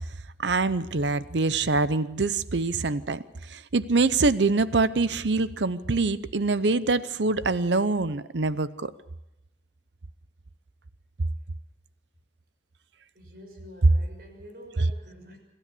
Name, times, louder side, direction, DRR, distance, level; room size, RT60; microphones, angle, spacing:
voice 1, 0.4-8.9, right 3 dB, 85° right, 15 dB, 0.8 m, -25 dB
voice 2, 13.1-15.4, equal, 55° right, 3 dB, 6.1 m, -47 dB
26.5 x 13.0 x 8.4 m, 0.87 s
head